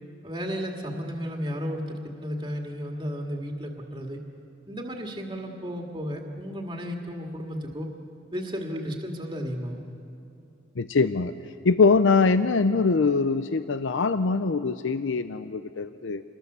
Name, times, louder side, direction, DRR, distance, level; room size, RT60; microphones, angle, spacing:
voice 1, 0.2-4.2 4.7-7.9 8.3-9.8, equal, 25° right, 1 dB, 2.0 m, -33 dB
voice 2, 10.8-11.3 11.6-16.2, left 4 dB, 80° left, 11 dB, 0.6 m, -23 dB
27.5 x 21.5 x 6.9 m, 2.6 s
head